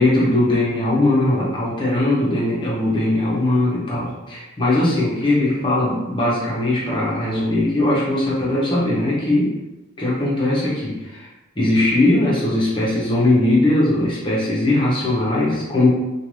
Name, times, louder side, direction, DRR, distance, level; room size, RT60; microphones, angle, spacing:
voice 1, 0.0-9.6 10.0-11.3 11.6-15.9, left 1 dB, 20° left, -6 dB, 0.7 m, -19 dB
2.6 x 2.2 x 3.1 m, 1.1 s
head